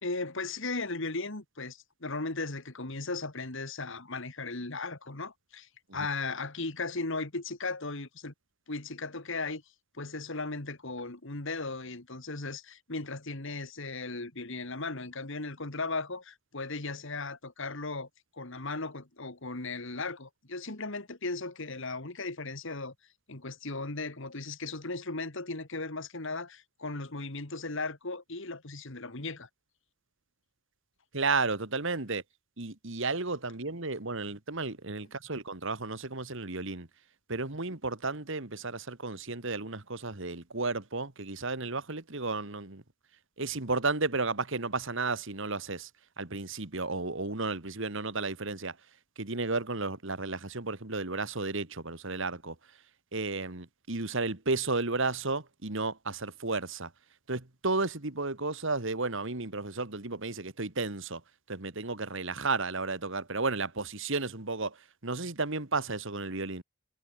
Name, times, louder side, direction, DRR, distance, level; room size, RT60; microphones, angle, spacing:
voice 1, 0.0-8.3 8.7-9.6 10.0-18.1 18.3-22.9 23.3-29.5, left 3 dB, 60° left, 2.1 m, -37 dB
voice 2, 31.1-32.2 32.6-36.9 37.3-42.8 43.4-45.9 46.2-48.7 49.2-52.6 53.1-56.9 57.3-61.2 61.5-64.8 65.0-66.6, right 3 dB, 60° right, 1.9 m, -33 dB
head